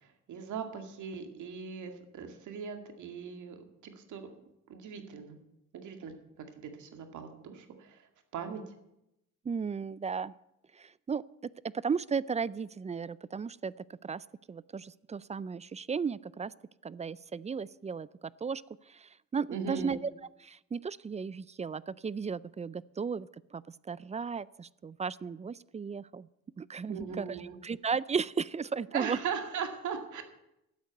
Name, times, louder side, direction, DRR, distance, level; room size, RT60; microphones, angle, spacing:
voice 1, 0.0-4.3 4.7-5.4 5.7-8.0 8.3-8.6 19.5-20.0 26.9-27.6 28.9-30.2, right 6 dB, 75° right, 6 dB, 2.2 m, -39 dB
voice 2, 9.4-10.3 10.8-11.2 11.8-13.7 14.0-16.5 16.8-18.1 18.4-18.6 18.9-20.1 20.4-23.6 23.9-26.3 26.6-27.4 27.6-29.2, right 5 dB, 25° right, 20 dB, 0.4 m, -35 dB
12.0 x 8.3 x 9.2 m, 0.86 s
cardioid pair, 90°, 30 cm